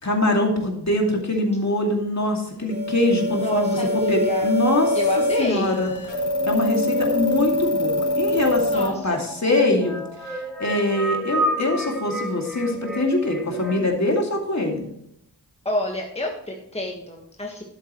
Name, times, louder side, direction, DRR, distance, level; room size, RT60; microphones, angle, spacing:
voice 1, 0.0-3.8 4.1-5.0 5.4-5.9 6.5-14.9, left 1 dB, 40° left, 1 dB, 2.4 m, -23 dB
sound 1, 2.7-8.9, left 1 dB, 85° left, 3.2 m, -24 dB
voice 2, 3.3-4.5 4.9-5.8 8.7-9.2 15.6-17.6, left 1 dB, 15° left, 0 dB, 1.5 m, -29 dB
sound 2, 4.4-13.9, equal, ahead, 2.0 m, -31 dB
11.5 x 8.1 x 3.1 m, 0.75 s
wide cardioid pair, 70°, 40 cm